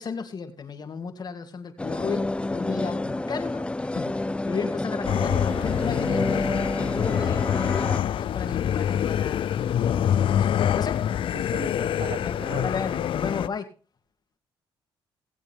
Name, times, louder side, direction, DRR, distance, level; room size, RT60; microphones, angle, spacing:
voice 1, 0.0-6.5 6.8-11.0 12.2-13.7, left 5 dB, 45° left, 6 dB, 2.5 m, -34 dB
sound 1, 1.8-8.0, left 2 dB, 10° left, 0.5 m, -29 dB
sound 2, 5.0-13.5, left 10 dB, 60° left, 0.5 m, -26 dB
voice 2, 11.3-12.7, right 7 dB, 70° right, 11 dB, 1.4 m, -38 dB
19.0 x 8.0 x 3.6 m, 0.35 s
cardioid pair, 85°, 10 cm